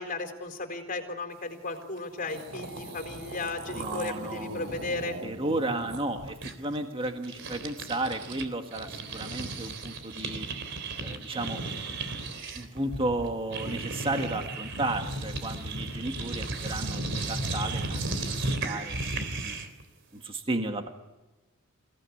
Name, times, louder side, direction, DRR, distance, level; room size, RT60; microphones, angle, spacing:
voice 1, 0.0-5.2, left 2 dB, 45° left, 5 dB, 4.3 m, -35 dB
sound 1, 2.0-2.1 2.2-8.5 8.7-19.8, right 2 dB, 60° right, 3.7 m, -35 dB
voice 2, 3.8-4.5 5.2-10.5 11.0-11.6 12.6-19.6 20.1-20.9, right 2 dB, 25° right, 4 dB, 1.8 m, -33 dB
29.0 x 18.0 x 9.8 m, 1.1 s
head